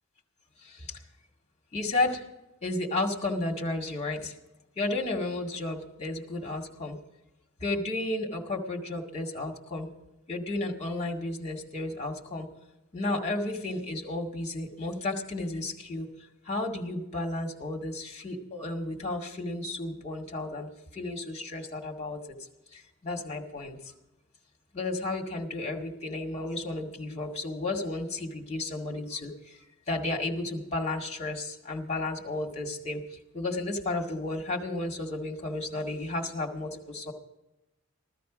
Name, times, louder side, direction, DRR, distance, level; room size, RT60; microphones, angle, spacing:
voice 1, 0.6-1.0 1.7-2.2 2.6-4.4 4.8-7.0 7.6-9.9 10.3-12.5 12.9-16.1 16.4-22.4 22.7-23.9 24.7-29.6 29.9-37.1, left 2 dB, 30° left, 2 dB, 2.1 m, -33 dB
15.0 x 13.0 x 5.1 m, 0.94 s
head